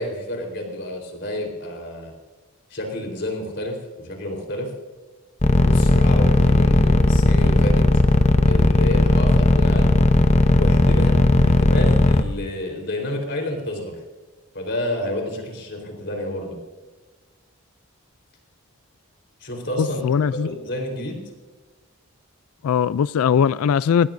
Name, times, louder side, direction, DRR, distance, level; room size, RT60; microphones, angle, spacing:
voice 1, 0.0-2.1 2.7-4.7 5.5-7.9 8.5-9.9 10.5-14.0 14.5-16.6 19.4-20.0 20.3-21.2, left 1 dB, 50° left, 2 dB, 4.0 m, -30 dB
sound 1, 5.4-12.2, left 2 dB, 30° left, 0.7 m, -15 dB
voice 2, 19.8-20.6 22.6-24.1, left 7 dB, 80° left, 18 dB, 0.3 m, -20 dB
20.5 x 19.5 x 2.6 m, 1.3 s
head